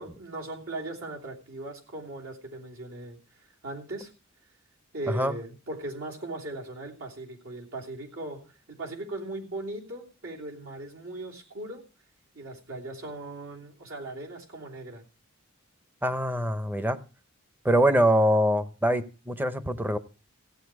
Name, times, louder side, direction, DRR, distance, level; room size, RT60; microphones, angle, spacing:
voice 1, 0.0-3.2 3.6-4.1 4.9-11.8 12.3-15.0, right 2 dB, 70° right, -2 dB, 3.1 m, -38 dB
voice 2, 16.0-17.0 17.6-20.0, equal, 10° right, 11 dB, 0.8 m, -24 dB
15.5 x 8.8 x 4.8 m, 0.35 s
head